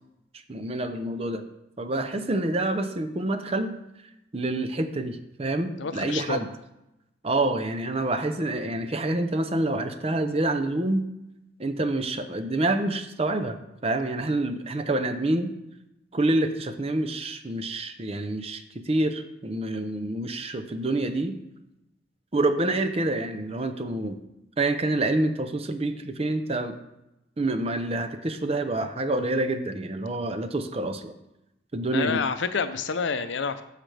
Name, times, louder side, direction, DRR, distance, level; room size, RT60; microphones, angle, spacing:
voice 1, 0.5-1.4 1.8-3.7 4.3-6.5 7.2-11.1 11.6-15.5 16.1-21.4 22.3-24.2 24.6-26.8 27.4-31.1 31.7-32.2, right 2 dB, 30° right, 9 dB, 0.6 m, -27 dB
voice 2, 5.8-6.5 31.9-33.6, left 5 dB, 70° left, 10 dB, 0.6 m, -28 dB
14.0 x 5.0 x 3.3 m, 0.88 s
head